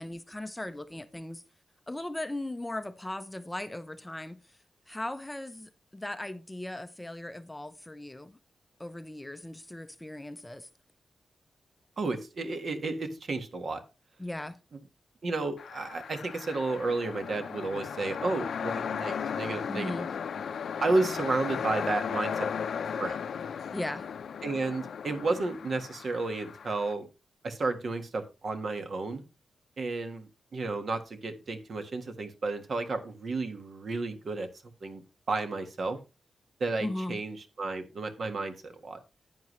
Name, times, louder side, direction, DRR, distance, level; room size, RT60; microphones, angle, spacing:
voice 1, 0.0-1.4 1.9-4.4 4.9-8.4 8.8-10.7 14.2-14.6 19.7-20.1 23.7-24.1 36.8-37.2, left 1 dB, 10° left, 0.6 m, -38 dB
voice 2, 12.0-13.8 15.2-19.9 20.8-22.5 22.9-23.2 24.4-27.1 27.4-29.2 29.8-34.5 34.8-36.0 36.6-39.0, right 3 dB, 50° right, 1.5 m, -32 dB
sound 1, 15.6-26.9, left 7 dB, 75° left, 0.6 m, -36 dB
10.5 x 9.5 x 3.1 m
wide cardioid pair, 135°, 0 cm